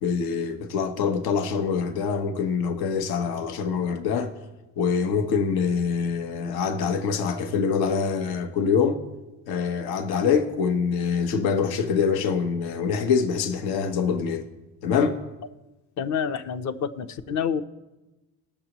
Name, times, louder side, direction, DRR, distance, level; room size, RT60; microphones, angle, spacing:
voice 1, 0.0-4.3 4.8-9.0 9.5-14.4 14.8-15.2, left 6 dB, 85° left, 1.1 m, -25 dB
voice 2, 16.0-17.6, left 7 dB, 50° left, 0.8 m, -28 dB
20.0 x 6.8 x 3.0 m
cardioid pair, 115°, 36 cm